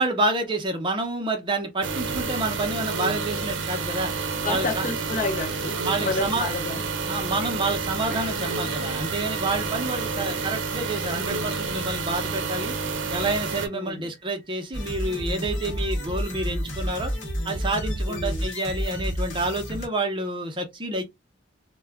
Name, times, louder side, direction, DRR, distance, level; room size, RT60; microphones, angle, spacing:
voice 1, 0.0-4.1 4.5-4.9 5.8-6.6 7.1-12.7 13.1-17.1 17.4-21.0, right 2 dB, 25° right, 0.6 m, -28 dB
sound 1, 1.8-13.7, right 4 dB, 75° right, 0.6 m, -29 dB
voice 2, 4.4-7.0 10.1-10.4 13.7-14.1 18.1-18.4, left 2 dB, 40° left, 0.7 m, -31 dB
sound 2, 8.1-16.1 16.8-17.0 17.4-17.5 18.9-19.0, right 2 dB, 5° left, 1.0 m, -47 dB
sound 3, 14.7-19.9, equal, 75° left, 1.0 m, -30 dB
2.3 x 2.1 x 3.4 m
head